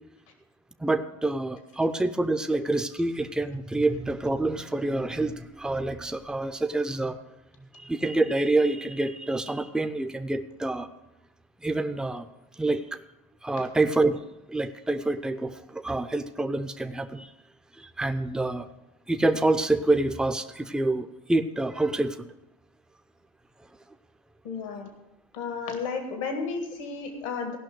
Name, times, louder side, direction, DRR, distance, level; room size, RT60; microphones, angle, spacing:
voice 1, 0.8-7.2 7.7-10.9 11.6-12.3 12.6-13.0 13.4-14.2 14.5-17.3 17.8-18.7 19.1-22.3, right 2 dB, 5° right, 8 dB, 0.7 m, -27 dB
voice 2, 24.4-24.9 25.3-27.6, left 4 dB, 80° left, 5 dB, 1.8 m, -32 dB
16.0 x 5.8 x 6.4 m, 0.92 s
hypercardioid pair, 85°, 17 cm